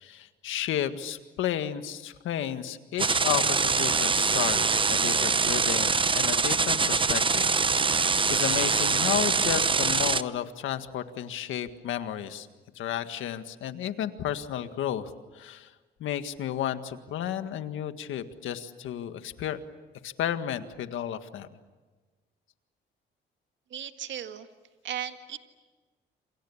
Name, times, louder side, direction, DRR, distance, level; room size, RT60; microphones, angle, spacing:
voice 1, 0.0-7.5 8.3-12.5 12.8-15.7 16.0-19.6 20.0-21.5, left 10 dB, 80° left, 9 dB, 1.8 m, -32 dB
sound 1, 3.0-10.2, right 4 dB, 25° right, 0.9 m, -24 dB
voice 2, 23.7-24.5 24.8-25.4, right 10 dB, 70° right, 8 dB, 1.8 m, -36 dB
28.5 x 27.0 x 7.3 m, 1.3 s
cardioid pair, 90°, 20 cm